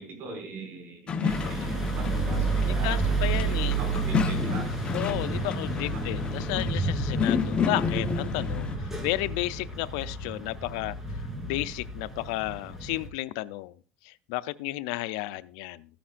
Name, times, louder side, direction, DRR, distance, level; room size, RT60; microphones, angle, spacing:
voice 1, 0.0-4.7 5.8-6.0, right 3 dB, 55° right, 2 dB, 5.8 m, -40 dB
sound 1, 1.1-8.8, left 6 dB, 30° left, 1.0 m, -31 dB
sound 2, 1.3-13.1, right 3 dB, 10° right, 3.0 m, -31 dB
voice 2, 2.7-3.8 4.9-10.9 11.4-13.7 14.0-15.9, left 18 dB, 85° left, 16 dB, 0.5 m, -32 dB
14.5 x 10.0 x 2.5 m, 0.40 s
cardioid pair, 125°, 4 cm